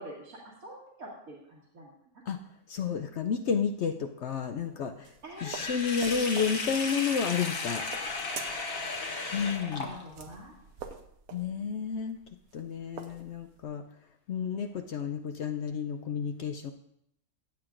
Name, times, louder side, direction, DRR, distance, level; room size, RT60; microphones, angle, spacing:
voice 1, 0.0-1.9 5.2-5.6 9.6-10.5, equal, 75° right, -6 dB, 2.3 m, -45 dB
voice 2, 2.7-5.1 5.4-7.8 9.3-9.9 11.3-12.2 12.5-13.8 14.3-16.7, left 6 dB, 65° left, 6 dB, 0.7 m, -31 dB
sound 1, 4.4-13.7, right 7 dB, 90° right, 1.3 m, -47 dB
Sink (filling or washing), 5.4-10.3, left 3 dB, 45° left, 1.1 m, -35 dB
15.5 x 8.7 x 2.5 m, 0.74 s
omnidirectional pair, 1.5 m